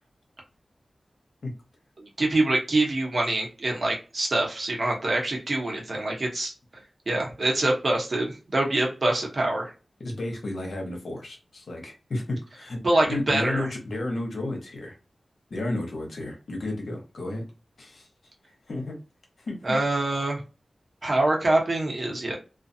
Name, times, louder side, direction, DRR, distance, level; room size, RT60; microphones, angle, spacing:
voice 1, 2.2-6.5 7.1-9.7 12.8-13.7 19.6-20.4 21.0-22.3, right 2 dB, 55° right, -1 dB, 1.0 m, -25 dB
voice 2, 10.0-12.8 13.1-15.0 15.5-17.5 17.8-18.1 18.7-19.0 19.5-19.8, left 2 dB, 80° left, 1 dB, 0.9 m, -32 dB
2.4 x 2.3 x 2.6 m, 0.32 s
wide cardioid pair, 80°, 0 cm